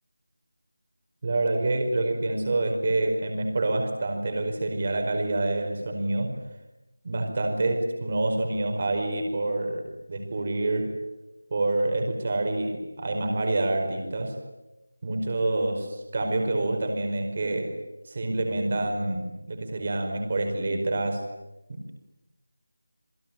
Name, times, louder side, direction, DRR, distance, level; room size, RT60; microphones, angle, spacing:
voice 1, 1.2-6.3 7.0-10.9 11.5-14.4 15.0-17.8 18.0-21.2 21.7-21.9, right 2 dB, 25° right, 4 dB, 4.9 m, -27 dB
28.0 x 23.0 x 9.0 m, 0.96 s
figure-of-eight pair, 180°, 0 cm